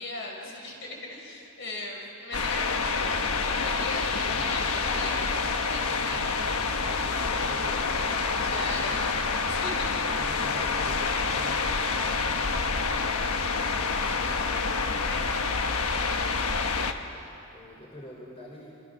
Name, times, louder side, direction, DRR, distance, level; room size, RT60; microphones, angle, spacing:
voice 1, 0.0-6.9 8.4-10.0 13.8-16.3, left 2 dB, 55° left, 0 dB, 5.4 m, -39 dB
sound 1, 2.3-16.9, left 4 dB, 80° left, 1.3 m, -27 dB
voice 2, 4.2-4.8 6.8-9.0 10.1-13.1 17.5-18.7, equal, 25° left, -3 dB, 3.8 m, -47 dB
27.0 x 26.0 x 6.5 m, 2.8 s
head